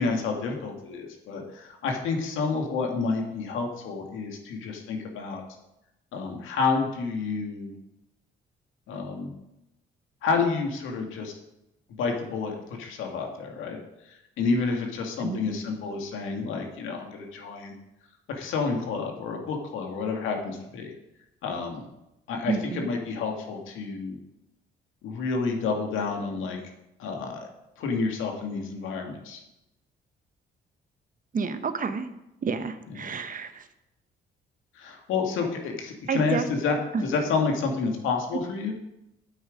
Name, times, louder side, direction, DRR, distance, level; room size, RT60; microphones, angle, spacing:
voice 1, 0.0-5.4 6.1-7.7 8.9-9.3 10.2-11.3 12.0-13.8 14.4-17.8 18.3-20.9 21.4-21.9 22.3-24.2 25.0-26.6 27.0-27.5 27.8-29.4 34.8-36.4 36.6-36.8 37.0-38.7, left 4 dB, 90° left, 2 dB, 2.0 m, -29 dB
voice 2, 22.5-22.9 31.3-32.1 32.4-33.7 36.1-36.5 36.9-37.0, right 5 dB, 45° right, 10 dB, 1.0 m, -29 dB
8.9 x 8.7 x 5.1 m, 0.89 s
cardioid pair, 90°, 20 cm